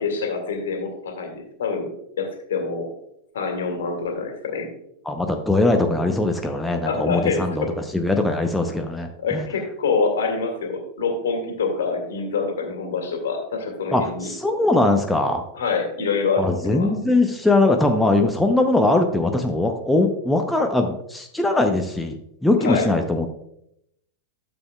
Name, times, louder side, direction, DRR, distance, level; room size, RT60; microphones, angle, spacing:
voice 1, 0.0-1.9 2.2-2.9 3.3-4.7 6.8-7.7 9.2-14.3 15.5-16.9 22.6-22.9, left 4 dB, 60° left, 3 dB, 1.9 m, -26 dB
voice 2, 5.1-7.6 7.9-9.4 13.9-15.4 16.4-22.2 22.4-23.3, left 2 dB, 5° left, 3 dB, 0.7 m, -21 dB
12.0 x 7.0 x 2.3 m, 0.77 s
figure-of-eight pair, 90°, 0 cm